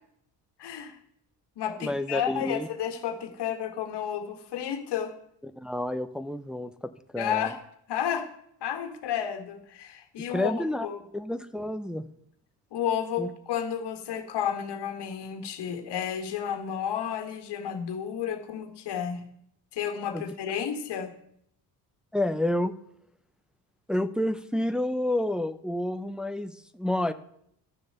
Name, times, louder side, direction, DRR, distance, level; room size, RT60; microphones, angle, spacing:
voice 1, 0.6-1.0 1.6-5.1 7.2-7.6 7.9-8.3 8.6-10.5 10.8-11.0 12.7-19.2 19.7-21.1, left 9 dB, 70° left, 6 dB, 1.8 m, -31 dB
voice 2, 1.8-2.7 5.6-7.5 10.3-10.9 11.1-12.1 13.2-13.3 20.1-20.2 22.1-22.7 23.9-27.1, left 1 dB, ahead, 10 dB, 0.6 m, -29 dB
12.5 x 7.1 x 6.8 m, 0.71 s
cardioid pair, 100°, 42 cm